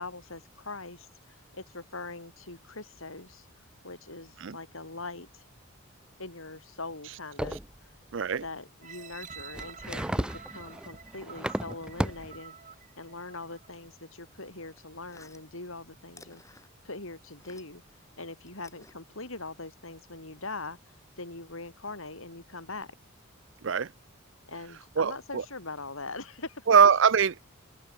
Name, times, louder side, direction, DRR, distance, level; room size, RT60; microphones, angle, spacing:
voice 1, 0.0-3.5 3.8-5.4 6.2-7.6 8.4-12.6 13.0-16.4 16.8-17.8 18.2-20.8 21.2-22.9 24.5-26.6, left 3 dB, 70° left, 4.7 m, -42 dB
sound 1, 7.4-7.8 9.2-12.4, equal, 5° right, 0.5 m, -34 dB
voice 2, 8.1-8.4 23.6-23.9 25.0-25.4 26.7-27.4, right 6 dB, 60° right, 0.5 m, -22 dB
sound 2, 8.8-13.8 14.3-14.4, right 7 dB, 35° right, 5.1 m, -48 dB
sound 3, 14.7-17.9 18.2-19.7, left 3 dB, 15° left, 4.6 m, -56 dB
open air
head